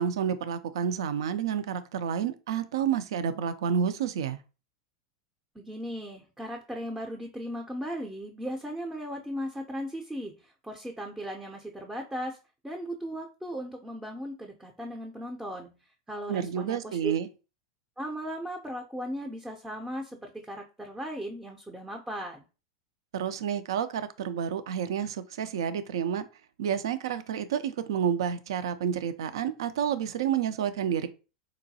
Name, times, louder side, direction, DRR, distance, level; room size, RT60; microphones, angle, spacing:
voice 1, 0.0-4.4 16.3-17.3 23.1-26.2 26.6-31.1, right 8 dB, 70° right, 0.3 m, -29 dB
voice 2, 5.5-12.4 12.6-15.8 16.1-17.2 18.0-22.5, equal, 5° right, 0.4 m, -37 dB
3.9 x 2.2 x 2.7 m
hypercardioid pair, 95°, 3 cm